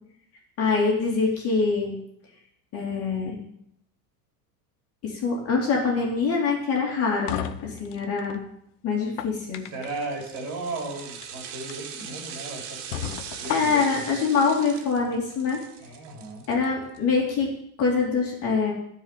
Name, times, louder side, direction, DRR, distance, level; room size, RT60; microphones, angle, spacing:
voice 1, 0.6-1.9 2.7-3.4 5.0-8.4 8.8-9.6 13.5-15.6 16.5-17.5 17.8-18.7, left 4 dB, 30° left, -1 dB, 2.6 m, -24 dB
sound 1, 6.7-8.4 9.0-10.1 11.1-11.3 11.7-11.8 12.3-12.4 12.9-14.0, left 11 dB, 55° left, 0.9 m, -34 dB
voice 2, 9.7-14.0 15.8-16.5, right 2 dB, 40° right, 0 dB, 4.2 m, -36 dB
sound 2, 9.7-17.0 17.3-17.4, right 7 dB, 90° right, 2.1 m, -40 dB
13.5 x 5.0 x 9.0 m, 0.73 s
supercardioid pair, 170°, 45 cm